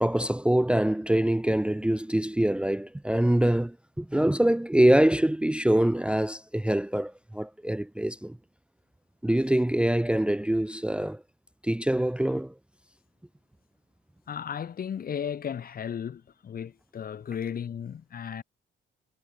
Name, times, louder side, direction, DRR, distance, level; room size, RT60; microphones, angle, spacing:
voice 1, 0.0-8.4 9.2-11.2 11.6-12.5, right 1 dB, 5° right, 0.7 m, -24 dB
voice 2, 14.3-18.4, left 8 dB, 45° left, 1.2 m, -35 dB
cardioid pair, 90°, 20 cm